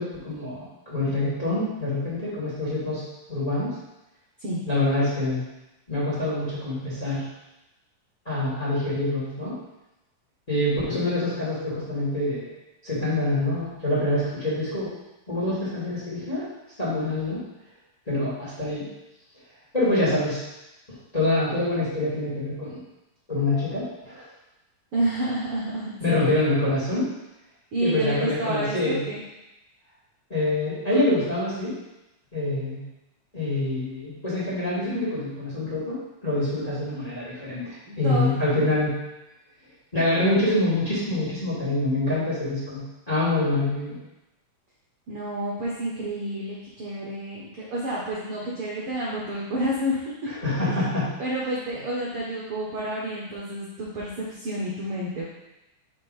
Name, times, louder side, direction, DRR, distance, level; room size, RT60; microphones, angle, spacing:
voice 1, 0.0-3.0 3.3-3.7 4.7-5.4 5.9-7.2 8.3-9.5 10.5-12.5 12.8-14.9 15.3-16.5 16.8-17.4 18.1-18.9 19.7-20.4 21.1-22.8 23.3-24.3 26.0-27.0 27.8-29.1 30.3-31.7 32.3-32.8 33.3-36.0 36.2-38.9 39.9-44.0 50.3-51.1, left 2 dB, 15° left, -9 dB, 1.7 m, -25 dB
voice 2, 24.9-26.3 27.7-29.2 38.0-38.3 38.6-38.7 45.1-50.0 51.2-55.2, right 1 dB, 65° right, -6 dB, 1.5 m, -29 dB
5.1 x 4.4 x 5.4 m, 0.96 s
omnidirectional pair, 3.8 m